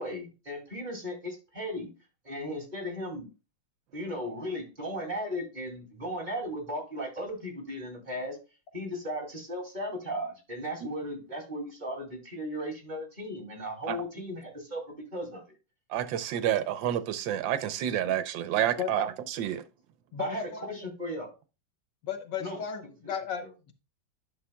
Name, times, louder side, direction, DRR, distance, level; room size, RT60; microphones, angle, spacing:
voice 1, 0.0-1.9 2.2-3.3 3.9-8.4 8.7-15.4 18.9-19.0 20.2-21.3 22.4-23.1 23.4-23.5, equal, 25° right, 2.5 m, -36 dB
voice 2, 15.9-19.6, right 10 dB, 85° right, 1.4 m, -29 dB
voice 3, 20.1-20.7 22.0-23.7, left 8 dB, 70° left, 1.6 m, -35 dB
11.0 x 6.2 x 2.2 m
omnidirectional pair, 2.0 m